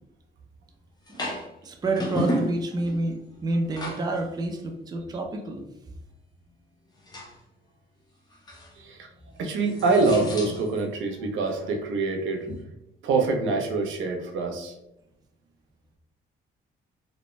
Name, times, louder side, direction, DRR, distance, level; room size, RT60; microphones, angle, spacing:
sound 1, 1.1-1.5 1.8-3.1 3.5-4.2 4.5-4.6 7.1-7.4 8.3-8.7 9.2-10.9 12.4-12.6, left 1 dB, 20° left, 0.7 m, -32 dB
voice 1, 1.6-5.6, right 2 dB, 20° right, 3 dB, 0.4 m, -29 dB
voice 2, 9.4-12.5 13.0-14.7, right 3 dB, 80° right, 3 dB, 0.6 m, -25 dB
2.5 x 2.1 x 3.0 m, 0.86 s
cardioid pair, 90°, 20 cm